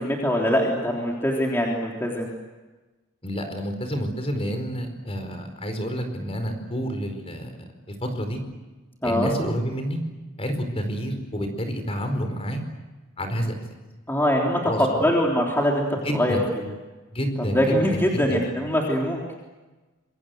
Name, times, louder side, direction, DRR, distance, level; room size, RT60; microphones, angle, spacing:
voice 1, 0.0-2.3 9.0-9.3 14.1-15.9 16.1-16.4 17.5-19.2, equal, 10° left, -2 dB, 3.5 m, -23 dB
voice 2, 3.2-7.6 7.9-8.4 9.0-10.0 10.4-12.6 13.2-13.5 14.6-15.1 16.0-16.4 17.1-17.6 17.9-18.0 18.3-18.4, equal, 30° left, 6 dB, 4.7 m, -29 dB
27.0 x 24.0 x 7.9 m, 1.2 s
head